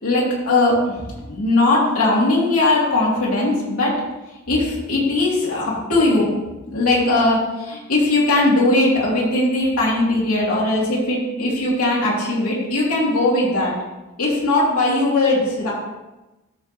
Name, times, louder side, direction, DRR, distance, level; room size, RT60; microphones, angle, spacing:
voice 1, 0.0-3.9 4.5-6.3 6.7-13.7 14.2-15.7, left 2 dB, 90° left, -5 dB, 3.0 m, -19 dB
12.5 x 4.3 x 3.5 m, 1.0 s
head